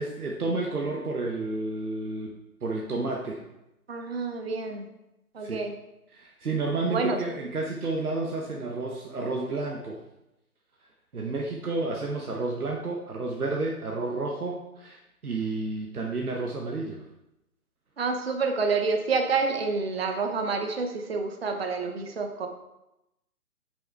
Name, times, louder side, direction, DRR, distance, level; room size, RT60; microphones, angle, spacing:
voice 1, 0.0-2.4 2.6-3.4 5.4-5.6 6.1-10.0 11.1-17.1, right 3 dB, 70° right, 0 dB, 1.0 m, -31 dB
voice 2, 3.9-4.9 5.3-5.7 6.9-7.2 18.0-22.5, right 4 dB, 40° right, 4 dB, 0.6 m, -28 dB
7.7 x 5.5 x 3.3 m, 0.91 s
figure-of-eight pair, 140°, 46 cm